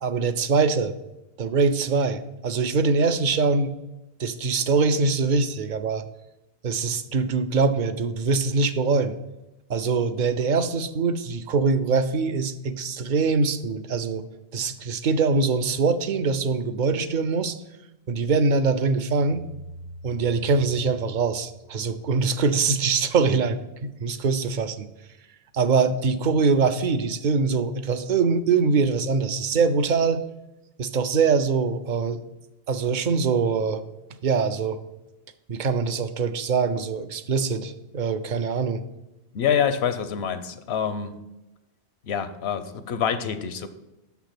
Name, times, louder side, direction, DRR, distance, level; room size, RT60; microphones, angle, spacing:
voice 1, 0.0-0.9 1.4-3.7 4.2-6.0 6.6-9.1 9.7-14.3 14.5-17.6 18.1-19.4 20.0-24.9 25.5-30.2 30.8-32.2 32.7-33.8 34.2-34.8 35.5-38.8, right 4 dB, 55° right, 11 dB, 0.6 m, -23 dB
voice 2, 39.3-41.2 42.0-43.7, left 8 dB, 80° left, 11 dB, 0.9 m, -26 dB
6.6 x 5.9 x 5.8 m, 0.96 s
omnidirectional pair, 1.1 m